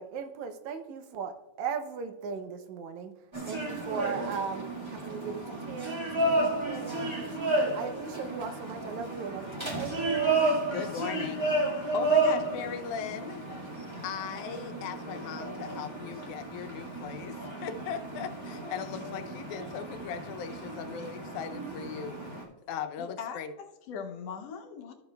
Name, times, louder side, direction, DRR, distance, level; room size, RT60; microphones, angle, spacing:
voice 1, 0.0-3.2 3.5-10.6, right 6 dB, 80° right, 8 dB, 2.1 m, -37 dB
sound 1, 3.3-22.4, right 2 dB, 15° right, 0.9 m, -32 dB
voice 2, 10.7-13.4 14.0-22.2 22.7-23.5, left 8 dB, 90° left, 9 dB, 2.1 m, -38 dB
voice 3, 23.0-24.9, left 6 dB, 70° left, 4 dB, 1.7 m, -40 dB
13.5 x 7.0 x 2.3 m, 1.1 s
omnidirectional pair, 3.3 m